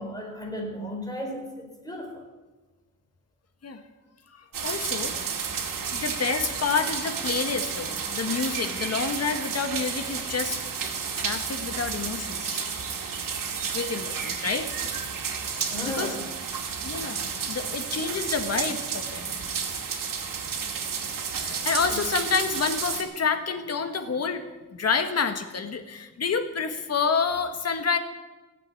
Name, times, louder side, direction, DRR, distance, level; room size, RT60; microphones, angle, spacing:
voice 1, 0.0-2.2 15.6-16.2 21.5-22.0, left 1 dB, 10° left, -1 dB, 4.5 m, -36 dB
voice 2, 4.3-5.1 5.5-10.6 11.2-12.6 13.7-14.9 15.6-16.2 16.7-19.5 21.4-24.4 24.7-28.0, left 5 dB, 50° left, 7 dB, 1.5 m, -29 dB
sound 1, 4.5-23.0, right 6 dB, 80° right, 2.3 m, -31 dB
17.0 x 7.9 x 9.6 m, 1.2 s
wide cardioid pair, 140°, 33 cm